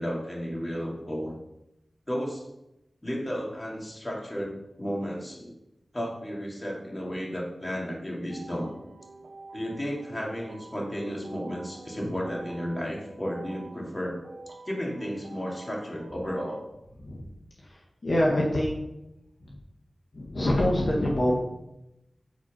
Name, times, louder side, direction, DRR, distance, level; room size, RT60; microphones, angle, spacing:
voice 1, 0.0-1.4 2.1-2.4 3.0-5.5 5.9-8.7 9.5-14.2 14.5-16.6, equal, 25° left, -2 dB, 2.5 m, -33 dB
sound 1, 8.3-16.6, right 2 dB, 80° right, 0.9 m, -47 dB
voice 2, 17.6-18.8 19.5-19.6 20.1-21.4, left 1 dB, 60° left, -3 dB, 1.5 m, -25 dB
8.2 x 4.4 x 5.4 m, 0.89 s
cardioid pair, 40°, 0 cm